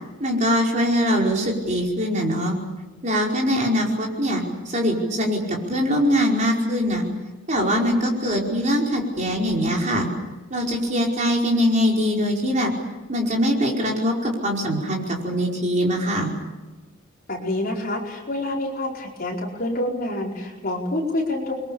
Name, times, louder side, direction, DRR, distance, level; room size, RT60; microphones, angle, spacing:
voice 1, 0.2-2.6 3.0-7.0 7.5-10.1 10.5-12.7 13.1-16.3, equal, 35° right, -1 dB, 5.1 m, -22 dB
voice 2, 17.3-21.6, left 1 dB, 45° left, -1 dB, 4.7 m, -27 dB
29.5 x 23.0 x 7.1 m, 1.2 s
head